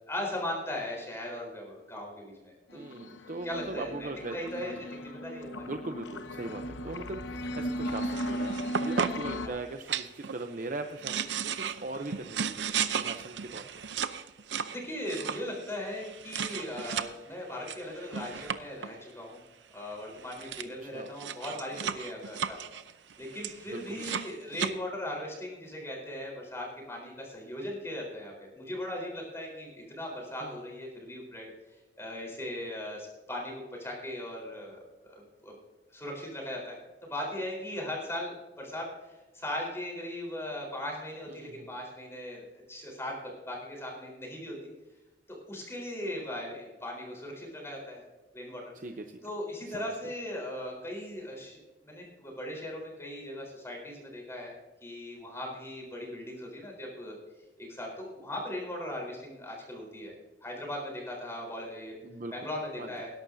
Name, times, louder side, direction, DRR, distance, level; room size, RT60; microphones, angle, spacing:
voice 1, 0.1-2.8 3.4-5.7 9.4-9.6 14.7-19.4 19.7-22.6 23.2-31.5 32.0-35.5 35.9-44.6 45.3-48.0 48.3-48.6 49.2-54.5 54.8-57.2 57.6-60.1 60.4-61.9 62.3-63.1, left 1 dB, 15° left, -1 dB, 4.1 m, -38 dB
sound 1, 2.7-9.5, equal, 85° left, 0.9 m, -37 dB
voice 2, 2.7-4.7 5.6-13.7 20.6-21.1 23.7-24.1 30.4-30.6 41.3-41.7 48.7-49.2 49.7-49.9 62.0-62.3 62.8-62.9, right 2 dB, 45° right, 6 dB, 0.7 m, -40 dB
sound 2, 7.9-9.3 9.9-10.4 10.8-17.1 17.7-18.9 19.9-20.0 20.2-20.6 21.1-24.7, right 7 dB, 85° right, 0.7 m, -35 dB
20.0 x 11.5 x 2.7 m, 1.1 s
head